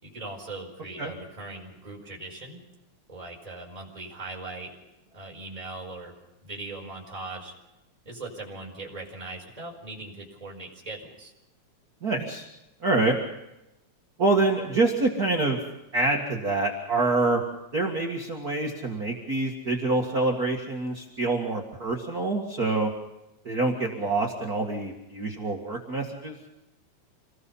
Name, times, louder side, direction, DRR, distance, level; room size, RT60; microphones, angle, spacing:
voice 1, 0.0-2.6 3.1-4.7 5.1-6.1 6.4-7.5 8.1-11.3, right 2 dB, 10° right, -2 dB, 5.2 m, -40 dB
voice 2, 12.0-12.5 12.8-13.2 14.2-15.6 15.9-17.4 17.7-22.9 23.4-26.4, right 2 dB, 35° right, -1 dB, 2.1 m, -26 dB
27.5 x 19.5 x 5.6 m, 0.94 s
omnidirectional pair, 3.5 m